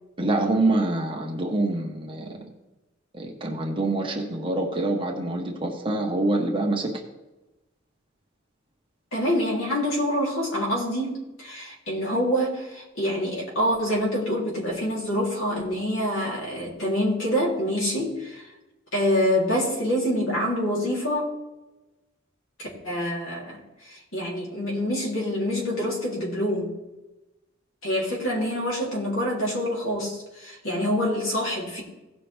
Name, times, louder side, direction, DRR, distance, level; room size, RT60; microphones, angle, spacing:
voice 1, 0.2-2.4 3.1-6.9, right 2 dB, 25° right, 0 dB, 1.4 m, -25 dB
voice 2, 9.1-18.4 18.9-21.3 22.6-26.7 27.8-31.8, equal, 70° left, -4 dB, 3.3 m, -26 dB
17.0 x 5.9 x 3.5 m, 1.0 s
head